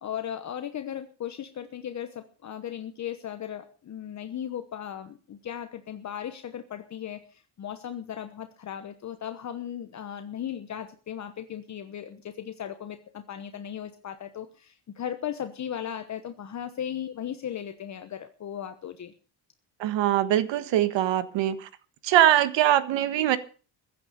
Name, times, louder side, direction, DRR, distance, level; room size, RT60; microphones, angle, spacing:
voice 1, 0.0-19.1, left 9 dB, 40° left, 1.1 m, -37 dB
voice 2, 19.8-21.7 22.0-23.4, right 12 dB, 80° right, 1.5 m, -22 dB
15.5 x 9.5 x 6.7 m
cardioid pair, 160°, 43 cm